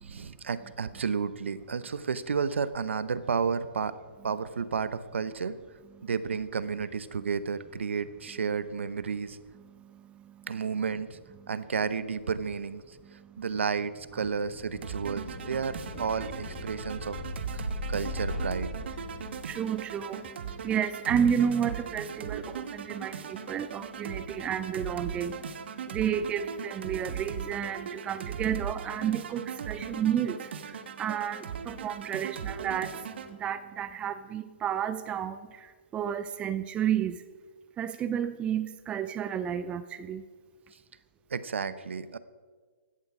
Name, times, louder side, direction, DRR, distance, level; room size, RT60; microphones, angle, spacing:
voice 1, 0.0-4.0 4.2-5.6 6.0-9.4 10.5-11.2 11.5-13.0 13.4-17.2 17.5-18.7 41.3-42.2, right 5 dB, 80° right, 14 dB, 0.9 m, -32 dB
sound 1, 14.3-19.8, left 1 dB, 20° left, 5.2 m, -38 dB
sound 2, 14.8-33.3, right 7 dB, 65° right, 1.2 m, -39 dB
voice 2, 19.4-20.2 20.6-25.3 25.9-30.4 31.0-32.9 33.4-35.4 35.9-37.2 37.8-40.2, right 8 dB, 15° right, 13 dB, 0.5 m, -31 dB
16.5 x 11.5 x 5.0 m, 1.5 s
hypercardioid pair, 140°, 6 cm